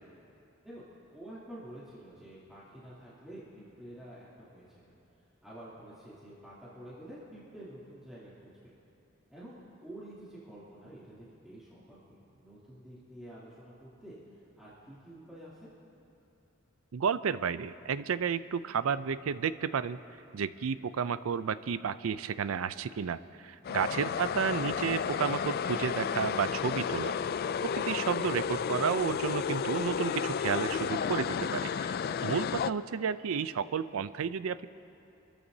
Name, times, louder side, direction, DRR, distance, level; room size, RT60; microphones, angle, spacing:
voice 1, 0.6-4.8 5.4-8.7 9.3-15.7 23.6-23.9, right 1 dB, ahead, -11 dB, 2.8 m, -49 dB
voice 2, 16.9-20.0 20.3-27.1 27.6-31.9 32.2-34.7, right 6 dB, 85° right, 14 dB, 0.4 m, -32 dB
sound 1, 23.7-32.7, left 7 dB, 45° left, 0.3 m, -32 dB
27.5 x 14.0 x 2.7 m, 2.9 s
head